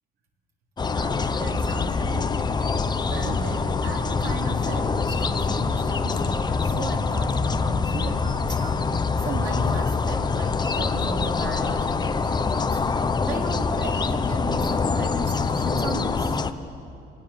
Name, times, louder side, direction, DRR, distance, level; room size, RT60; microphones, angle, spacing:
sound 1, 0.8-16.5, left 4 dB, 25° left, 0.9 m, -25 dB
voice 1, 0.9-16.4, right 4 dB, 65° right, -1 dB, 3.8 m, -36 dB
25.5 x 20.0 x 7.3 m, 2.6 s
cardioid pair, 110°, 17 cm